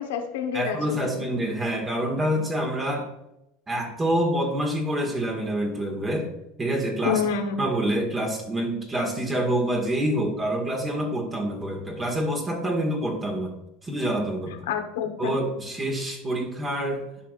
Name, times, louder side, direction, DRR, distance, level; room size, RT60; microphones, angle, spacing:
voice 1, 0.0-1.3 7.0-7.6 14.7-15.4, left 7 dB, 80° left, 5 dB, 1.2 m, -28 dB
voice 2, 0.5-3.1 3.7-6.3 6.6-7.2 7.6-13.5 13.8-14.6 15.2-17.0, right 1 dB, 25° right, 1 dB, 1.8 m, -26 dB
11.5 x 4.8 x 2.5 m, 0.86 s
hypercardioid pair, 100°, 0 cm